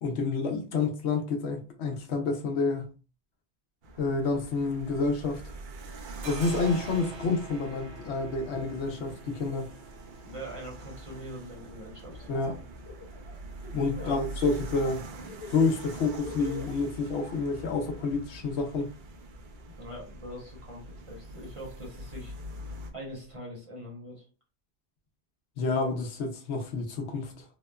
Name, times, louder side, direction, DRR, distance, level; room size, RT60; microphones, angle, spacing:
voice 1, 0.0-2.9 4.0-5.5 6.2-9.7 12.3-12.5 13.7-15.1 15.5-18.9 25.6-27.4, left 4 dB, 80° left, 0.9 m, -29 dB
sound 1, 3.8-22.9, right 1 dB, 60° right, 0.6 m, -44 dB
sound 2, 4.9-5.6 5.8-23.3, right 5 dB, 85° right, 0.9 m, -50 dB
voice 2, 10.2-12.3 13.9-14.2 19.7-22.3 22.9-24.3, right 1 dB, 30° right, 0.9 m, -43 dB
Laughter, 12.1-12.5 12.8-14.2 14.6-15.0 15.3-18.1, left 4 dB, 40° left, 0.5 m, -44 dB
2.9 x 2.1 x 2.2 m
omnidirectional pair, 1.1 m